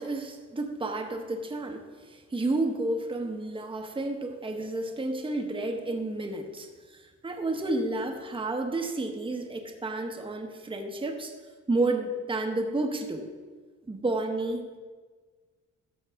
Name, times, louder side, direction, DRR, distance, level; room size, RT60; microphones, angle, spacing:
voice 1, 0.0-11.3 11.7-13.3 13.9-14.8, right 2 dB, 15° right, 3 dB, 1.0 m, -31 dB
13.0 x 6.4 x 3.5 m, 1.5 s
cardioid pair, 90°, 30 cm